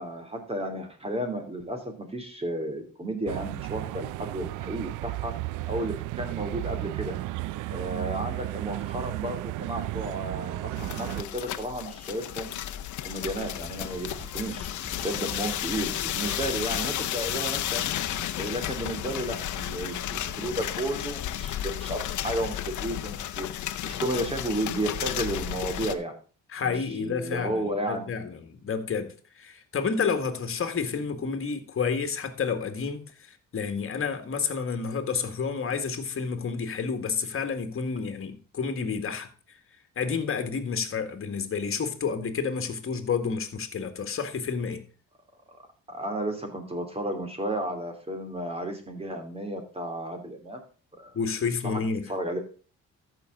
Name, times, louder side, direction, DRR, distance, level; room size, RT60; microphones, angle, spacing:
voice 1, 0.0-5.3 5.7-7.2 7.7-12.5 13.0-14.7 15.0-17.9 18.4-26.1 26.6-28.0 45.5-45.6 45.9-50.6 51.0-51.2 51.6-51.8 52.1-52.4, right 1 dB, 20° right, 3.1 m, -33 dB
sound 1, 3.3-11.2, right 17 dB, 90° right, 0.5 m, -34 dB
sound 2, 10.8-25.9, left 12 dB, 75° left, 0.9 m, -33 dB
sound 3, 13.6-20.8, left 2 dB, 20° left, 6.7 m, -44 dB
voice 2, 26.5-39.6 40.0-44.8 51.1-52.1, left 5 dB, 45° left, 1.9 m, -30 dB
14.0 x 6.1 x 3.8 m
cardioid pair, 90°, 30 cm